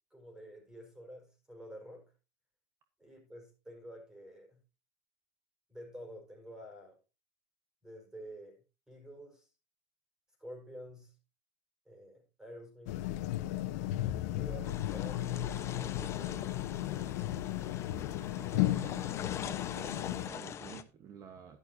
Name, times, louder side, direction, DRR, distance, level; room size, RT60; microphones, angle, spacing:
voice 1, 0.1-2.1 3.0-4.6 5.7-7.0 7.8-9.5 10.4-11.2 11.9-13.0 14.3-16.6, equal, 5° right, 5.5 m, -50 dB
sound 1, 12.9-20.3, left 14 dB, 85° left, 1.1 m, -35 dB
sound 2, 14.6-20.8, left 9 dB, 35° left, 1.1 m, -43 dB
voice 2, 18.3-21.6, right 8 dB, 40° right, 1.4 m, -50 dB
11.5 x 11.5 x 2.8 m
supercardioid pair, 135°, 8 cm